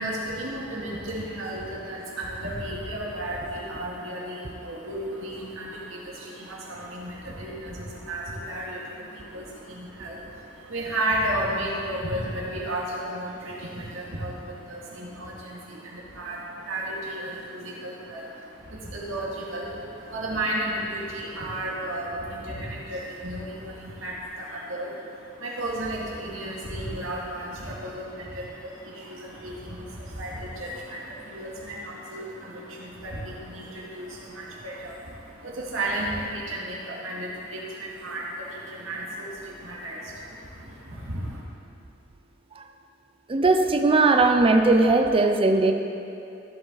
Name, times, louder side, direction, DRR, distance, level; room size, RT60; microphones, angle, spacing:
voice 1, 0.0-41.4, right 1 dB, 90° right, -4 dB, 2.1 m, -33 dB
voice 2, 43.3-45.7, right 3 dB, 30° right, 6 dB, 0.5 m, -19 dB
14.5 x 7.7 x 4.0 m, 2.7 s
head